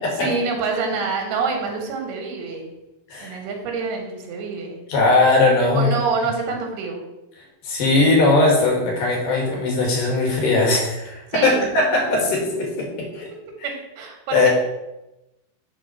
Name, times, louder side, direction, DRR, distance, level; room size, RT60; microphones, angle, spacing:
voice 1, 0.1-2.7 3.2-4.8 5.7-7.0 11.3-11.7 13.6-14.5, right 4 dB, 90° right, 2 dB, 3.5 m, -26 dB
voice 2, 4.9-5.9 7.6-12.9 13.1-13.2 14.3-14.5, left 2 dB, 65° left, -1 dB, 3.5 m, -19 dB
9.0 x 4.1 x 5.8 m, 0.97 s
omnidirectional pair, 4.3 m